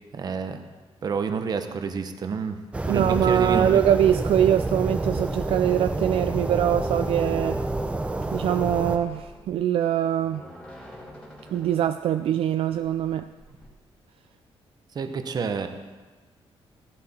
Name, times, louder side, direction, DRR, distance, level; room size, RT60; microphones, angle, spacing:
voice 1, 0.1-0.7 1.0-2.6 2.9-3.7 14.9-15.7, right 5 dB, 40° right, 7 dB, 1.0 m, -29 dB
sound 1, 2.7-9.0, right 2 dB, 10° right, 0.6 m, -28 dB
voice 2, 2.9-7.6 8.3-10.4 11.5-13.3, right 10 dB, 65° right, 9 dB, 0.4 m, -23 dB
sound 2, 6.1-13.7, equal, 10° left, 2.6 m, -48 dB
15.5 x 11.5 x 4.3 m, 1.3 s
wide cardioid pair, 165°, 10 cm